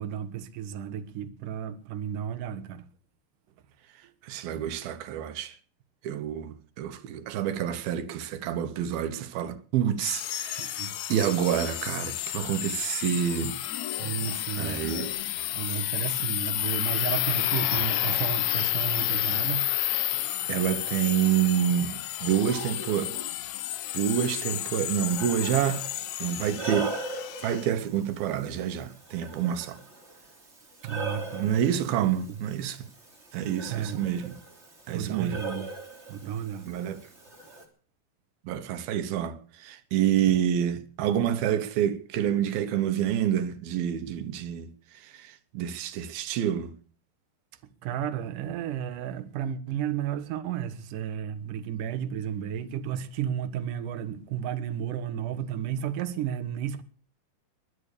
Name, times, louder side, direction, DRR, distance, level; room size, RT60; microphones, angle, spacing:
voice 1, 0.0-2.8 10.6-10.9 14.0-15.1 15.5-19.7 20.1-20.2 30.8-31.5 32.0-32.4 33.7-34.0 34.9-35.7 36.1-36.8 38.6-38.7 47.8-56.8, right 9 dB, 65° right, 2.9 m, -33 dB
voice 2, 4.2-5.6 6.0-13.5 14.6-15.1 20.5-23.1 23.9-25.9 26.2-26.9 27.4-29.8 31.4-32.9 33.3-34.4 34.9-35.4 36.7-37.0 38.5-44.7 44.9-46.7, right 10 dB, 90° right, 3.1 m, -28 dB
sound 1, 10.0-27.7, left 14 dB, 70° left, 1.9 m, -31 dB
Breathing, 24.2-37.6, right 3 dB, 20° right, 3.4 m, -41 dB
22.5 x 8.5 x 6.8 m
omnidirectional pair, 4.2 m